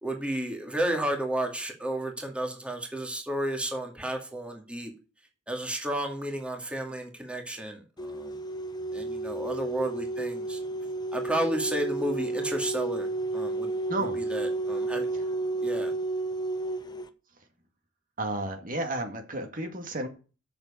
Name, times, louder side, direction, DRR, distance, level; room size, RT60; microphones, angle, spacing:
voice 1, 0.0-4.9 5.5-8.3 8.9-10.6 11.1-13.7 14.3-15.1 15.6-15.9, right 1 dB, 5° right, 2.2 m, -32 dB
sound 1, 8.0-17.1, right 2 dB, 20° left, 1.0 m, -32 dB
voice 2, 13.9-14.3 15.1-15.3 18.2-20.1, right 1 dB, 45° right, 2.1 m, -32 dB
7.9 x 7.0 x 8.4 m
head